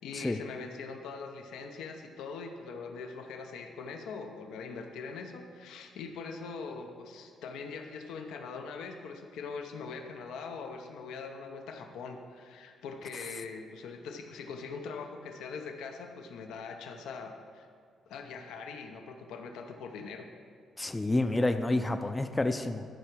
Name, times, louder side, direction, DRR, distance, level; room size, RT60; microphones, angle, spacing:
voice 1, 0.0-17.7 18.1-20.3, left 5 dB, 85° left, 4 dB, 0.7 m, -42 dB
voice 2, 20.8-22.9, left 2 dB, 15° left, 7 dB, 0.4 m, -29 dB
12.0 x 4.7 x 6.1 m, 2.1 s
cardioid pair, 90°, 0 cm